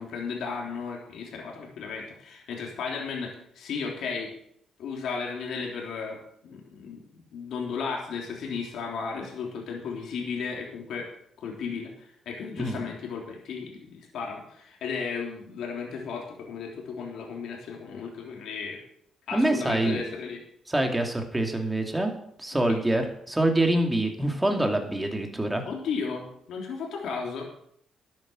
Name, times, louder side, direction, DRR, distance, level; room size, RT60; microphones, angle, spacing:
voice 1, 0.0-4.3 4.8-6.2 6.4-11.1 11.4-18.8 19.3-20.4 22.7-22.8 25.6-27.5, left 5 dB, 75° left, 0 dB, 3.3 m, -34 dB
voice 2, 19.3-20.0 20.7-22.1 22.4-25.6, right 1 dB, 10° right, 3 dB, 2.5 m, -25 dB
12.0 x 9.0 x 6.2 m, 0.69 s
cardioid pair, 90°, 0 cm